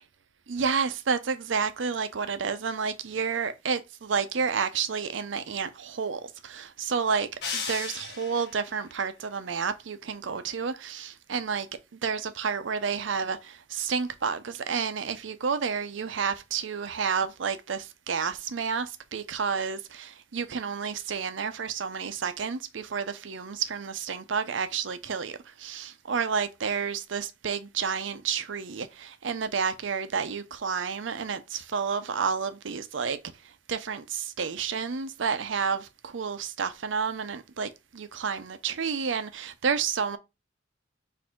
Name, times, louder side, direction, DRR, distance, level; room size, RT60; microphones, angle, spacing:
voice 1, 0.5-11.7 12.0-33.2 33.4-40.2, right 6 dB, 80° right, 0.6 m, -30 dB
sound 1, 7.4-8.7, left 5 dB, 60° left, 1.2 m, -35 dB
4.2 x 2.7 x 4.4 m
head